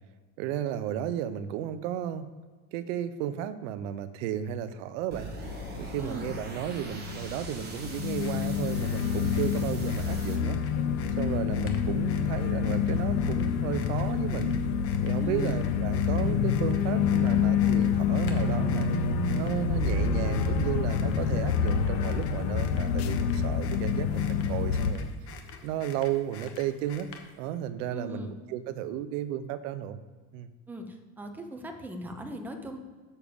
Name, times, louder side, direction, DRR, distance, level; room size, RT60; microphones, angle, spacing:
voice 1, 0.4-2.3 2.7-5.3 5.8-10.6 11.2-14.5 15.0-18.9 19.4-25.1 25.6-27.1 27.4-30.0 30.3-30.5, right 10 dB, 65° right, 12 dB, 0.8 m, -34 dB
sound 1, 5.1-10.4, right 2 dB, 25° right, 1.5 m, -43 dB
sound 2, 5.4-24.9, left 6 dB, 90° left, 1.0 m, -27 dB
voice 2, 6.0-6.3 15.2-15.7 27.9-28.3 30.7-32.8, equal, 5° right, 4 dB, 0.7 m, -39 dB
sound 3, 8.2-27.5, left 6 dB, 35° left, 1.1 m, -49 dB
6.9 x 6.1 x 7.0 m, 1.4 s
supercardioid pair, 155°, 42 cm